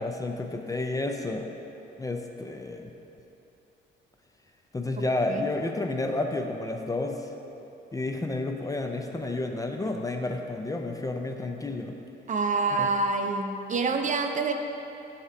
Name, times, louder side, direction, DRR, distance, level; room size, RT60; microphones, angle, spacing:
voice 1, 0.0-1.5 2.0-2.9 4.7-7.3 7.9-12.0 12.8-12.9, left 2 dB, 15° left, 3 dB, 0.4 m, -31 dB
voice 2, 12.3-14.5, right 4 dB, 40° right, 5 dB, 0.5 m, -26 dB
8.2 x 2.9 x 5.8 m, 3.0 s
cardioid pair, 90°, 20 cm